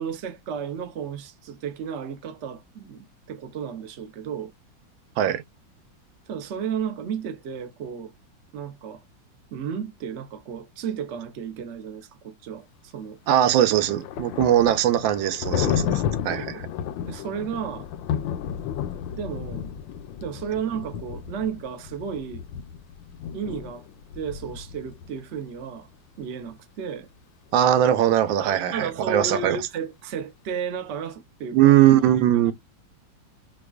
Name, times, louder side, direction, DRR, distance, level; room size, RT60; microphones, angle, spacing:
voice 1, 0.0-4.5 6.3-8.1 8.5-9.0 9.5-13.2 16.5-16.6 17.1-17.9 19.1-19.6 20.2-22.4 23.3-23.9 24.1-25.9 26.2-27.1 28.4-31.7 32.0-32.2 32.4-32.5, right 7 dB, 60° right, 0.7 m, -33 dB
Thunder, 13.3-25.1, left 9 dB, 80° left, 1.3 m, -32 dB
voice 2, 13.3-16.5 27.5-29.6 31.5-32.5, right 11 dB, 80° right, 1.3 m, -20 dB
4.7 x 2.3 x 2.3 m
omnidirectional pair, 2.1 m